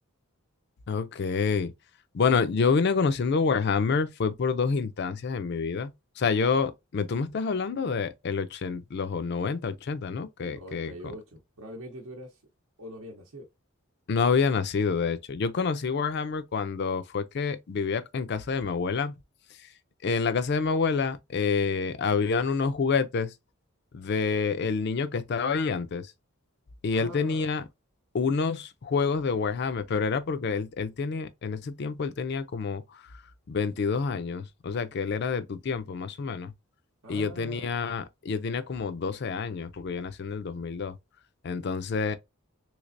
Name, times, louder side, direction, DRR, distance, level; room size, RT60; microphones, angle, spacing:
voice 1, 0.9-1.7 2.1-10.9 14.1-19.1 20.0-23.3 23.9-26.1 26.8-27.6 28.1-32.8 33.5-36.5 37.1-40.9 41.4-42.2, left 5 dB, 50° left, 0.4 m, -28 dB
voice 2, 10.5-12.4 12.8-13.5 26.9-27.5 37.0-37.7, equal, 75° right, 0.7 m, -43 dB
3.2 x 3.2 x 2.5 m
head